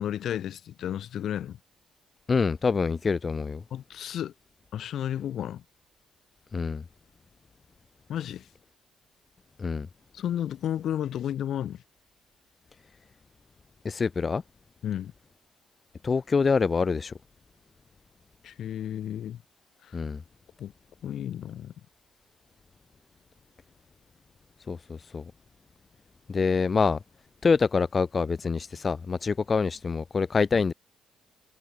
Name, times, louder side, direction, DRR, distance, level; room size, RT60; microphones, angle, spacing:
voice 1, 0.0-1.6 3.7-4.3 4.7-5.6 8.1-8.5 10.1-11.8 14.8-15.1 18.4-19.4 19.8-20.0 20.6-20.7 21.0-21.7, left 10 dB, 70° left, 4.1 m, -32 dB
voice 2, 2.3-3.6 6.5-6.8 9.6-9.9 13.8-14.4 16.0-17.1 19.9-20.2 24.7-25.2 26.3-27.0 27.4-30.7, left 5 dB, 35° left, 2.3 m, -25 dB
cardioid pair, 90°, 0 cm